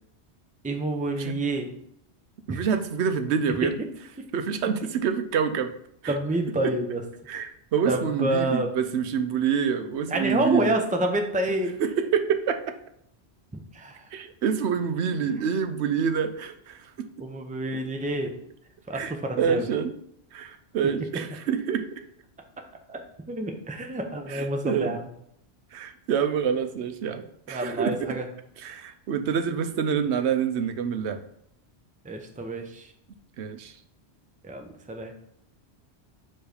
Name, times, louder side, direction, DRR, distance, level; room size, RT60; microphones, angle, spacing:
voice 1, 0.6-1.7 2.5-2.7 3.6-3.7 6.1-7.0 7.8-8.7 10.1-11.8 13.7-14.1 17.2-18.3 18.9-19.7 22.9-23.0 23.3-25.1 27.5-28.3 32.0-32.9 34.4-35.1, right 1 dB, 10° right, 3 dB, 0.6 m, -28 dB
voice 2, 2.5-3.8 4.3-5.7 6.0-6.2 6.6-6.7 7.3-10.7 11.8-12.7 14.1-16.8 18.9-19.9 20.3-22.1 24.3-24.9 25.7-28.2 28.6-31.2 33.4-33.7, right 7 dB, 80° right, 9 dB, 0.9 m, -27 dB
7.0 x 3.2 x 5.0 m, 0.73 s
omnidirectional pair, 1.1 m